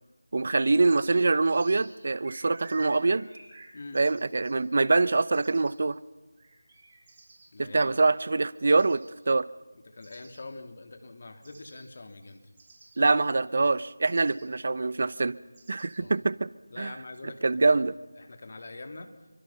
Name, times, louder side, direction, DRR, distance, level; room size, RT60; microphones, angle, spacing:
voice 1, 0.3-3.3 3.9-6.0 7.6-9.5 13.0-15.4 15.7-16.5 16.8-16.9 17.4-17.9, right 3 dB, 50° right, 18 dB, 0.8 m, -24 dB
sound 1, 0.7-5.7 6.4-7.5 8.0-8.3 8.7-9.3 10.0-10.4 11.4-11.8 12.1-13.8 14.0-14.4 15.5-16.0, right 3 dB, 30° right, 6.0 m, -51 dB
voice 2, 7.5-7.9 9.8-12.4 16.0-16.1 16.7-17.8 18.2-19.1, left 2 dB, 45° left, 6 dB, 3.0 m, -44 dB
27.5 x 24.0 x 5.9 m, 1.2 s
figure-of-eight pair, 170°, 0 cm